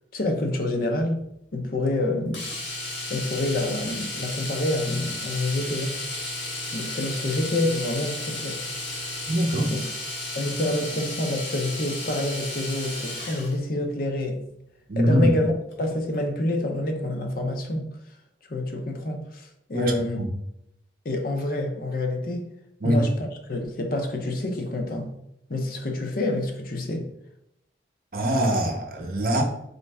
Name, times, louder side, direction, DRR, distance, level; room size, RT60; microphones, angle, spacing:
voice 1, 0.1-1.3 1.5-2.5 3.1-6.1 6.7-8.7 9.7-9.9 10.3-14.4 15.0-15.5 15.8-18.0 18.5-20.2 21.0-22.5 22.8-23.1 23.5-25.1 25.5-27.1, left 1 dB, 50° left, 0.6 m, -27 dB
Domestic sounds home sounds, 2.3-13.6 15.7-15.8 16.1-16.2, left 2 dB, 70° left, 1.3 m, -33 dB
voice 2, 9.3-9.7 14.9-15.3 19.7-20.3 22.8-23.0 28.1-29.4, right 1 dB, 50° right, 0.7 m, -23 dB
3.9 x 3.2 x 3.3 m
head